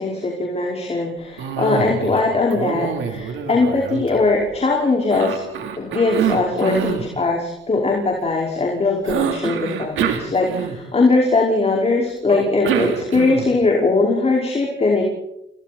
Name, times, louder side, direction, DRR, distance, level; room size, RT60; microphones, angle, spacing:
voice 1, 0.0-5.4 5.8-15.0, left 3 dB, 30° left, -1 dB, 5.2 m, -20 dB
Cough, 1.4-2.2 2.5-4.6 5.1-7.1 9.0-11.1 12.3-13.6, right 7 dB, 80° right, 3.7 m, -25 dB
30.0 x 29.5 x 4.4 m, 0.84 s
cardioid pair, 90°, 20 cm